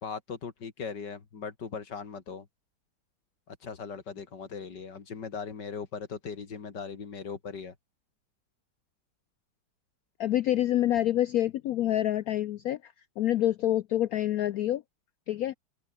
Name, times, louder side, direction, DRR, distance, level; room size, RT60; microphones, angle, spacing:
voice 1, 0.0-2.5 3.5-7.7, left 5 dB, 60° left, 3.0 m, -39 dB
voice 2, 10.2-14.8 15.3-15.6, left 13 dB, 80° left, 0.8 m, -27 dB
open air
omnidirectional pair, 2.2 m